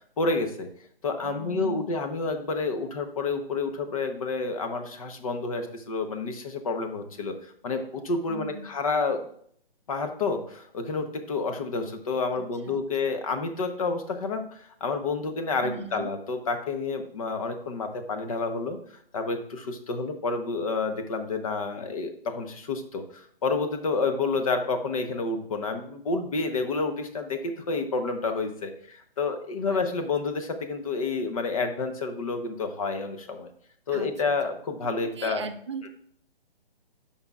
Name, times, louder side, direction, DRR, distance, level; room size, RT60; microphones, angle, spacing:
voice 1, 0.2-0.7 1.0-7.3 7.6-9.3 9.9-18.8 19.1-33.5 33.9-35.4, left 4 dB, 35° left, 6 dB, 0.9 m, -29 dB
voice 2, 1.2-1.9 8.3-8.7 12.6-12.8 15.6-16.1 29.7-29.8 33.9-34.3 35.2-35.9, right 4 dB, 30° right, 7 dB, 0.5 m, -38 dB
13.5 x 5.6 x 2.4 m, 0.64 s
hypercardioid pair, 160°, 30 cm